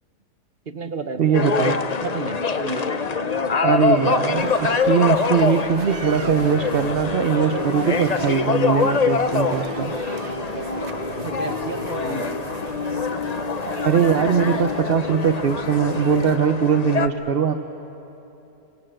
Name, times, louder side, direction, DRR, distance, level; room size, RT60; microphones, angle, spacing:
voice 1, 0.6-3.8 10.4-12.6, right 3 dB, 35° right, 6 dB, 1.3 m, -34 dB
voice 2, 1.2-1.8 3.6-9.9 13.4-13.5 13.8-17.6, right 7 dB, 50° right, 6 dB, 0.7 m, -21 dB
sound 1, 1.3-17.1, left 5 dB, 40° left, 0.5 m, -24 dB
sound 2, 4.4-16.4, right 9 dB, 80° right, 1.4 m, -36 dB
27.5 x 24.5 x 7.8 m, 2.9 s
omnidirectional pair, 1.8 m